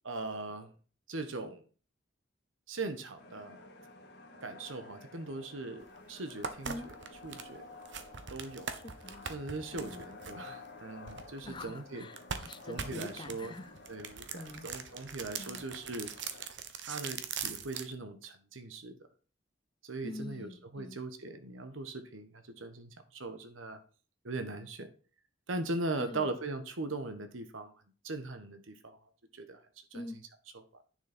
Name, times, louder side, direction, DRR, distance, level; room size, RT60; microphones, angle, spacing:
voice 1, 0.0-0.7 1.1-1.6 2.7-3.6 4.4-6.8 7.2-7.7 8.3-8.7 9.3-12.1 12.6-13.5 13.9-16.1 16.8-19.0 19.8-23.8 24.2-24.9 25.5-27.7 28.0-29.0 29.3-29.6 29.9-30.0 30.5-30.6, right 2 dB, 85° right, 1.2 m, -40 dB
sound 1, 3.2-16.5, left 3 dB, 55° left, 1.7 m, -52 dB
sound 2, 5.8-5.9 6.3-11.7 12.1-17.9, right 6 dB, 65° right, 1.0 m, -41 dB
voice 2, 8.7-9.3 9.7-10.2 11.4-13.8 14.3-14.7 15.4-15.6 20.0-21.0 26.0-26.3 29.9-30.2, left 1 dB, 25° left, 0.8 m, -45 dB
10.0 x 6.4 x 4.3 m
head